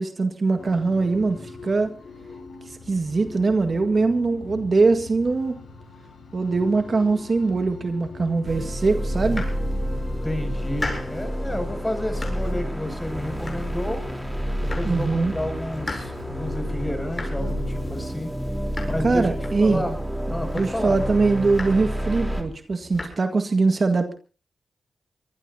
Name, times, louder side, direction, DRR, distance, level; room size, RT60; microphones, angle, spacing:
voice 1, 0.0-1.9 2.9-5.6 6.3-9.5 14.8-15.4 19.0-19.9 20.6-24.2, right 3 dB, 50° right, 7 dB, 1.8 m, -22 dB
sound 1, 0.6-18.0, left 4 dB, 85° left, 5.2 m, -42 dB
sound 2, 8.5-22.4, equal, 5° right, 3.8 m, -29 dB
Domestic sounds home sounds, 9.1-10.0 10.4-11.3 11.7-12.6 12.9-14.0 14.3-15.1 15.4-19.9 20.3-21.0 21.3-22.1 22.4-23.1, left 2 dB, 35° left, 7.9 m, -38 dB
voice 2, 10.2-14.0 14.6-18.3 18.8-20.0 20.3-21.0, left 1 dB, 15° left, 6 dB, 6.9 m, -31 dB
24.5 x 20.0 x 2.8 m, 0.37 s
cardioid pair, 65°, 0 cm